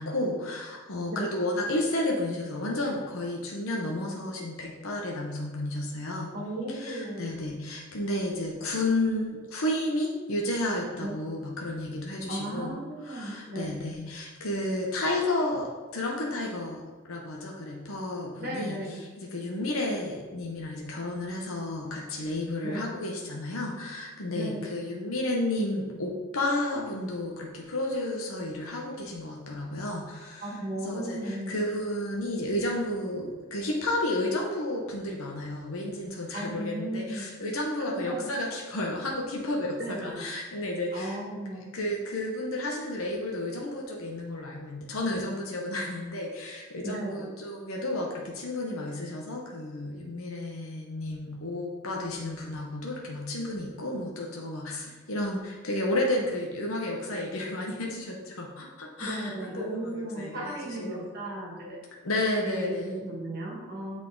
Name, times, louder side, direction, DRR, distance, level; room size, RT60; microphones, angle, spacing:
voice 1, 0.0-6.3 6.7-12.8 13.0-16.8 17.1-30.5 30.8-41.2 41.7-61.1 62.0-62.9, left 1 dB, 90° left, -1 dB, 0.9 m, -32 dB
voice 2, 6.3-7.3 11.0-11.1 12.3-13.9 18.4-19.0 22.6-22.9 24.3-24.7 30.4-31.5 36.3-37.3 37.9-38.3 39.8-40.3 40.9-41.6 46.8-47.3 59.0-61.8 62.4-64.0, right 1 dB, 45° right, -3 dB, 1.6 m, -35 dB
8.1 x 3.7 x 3.7 m, 1.3 s
head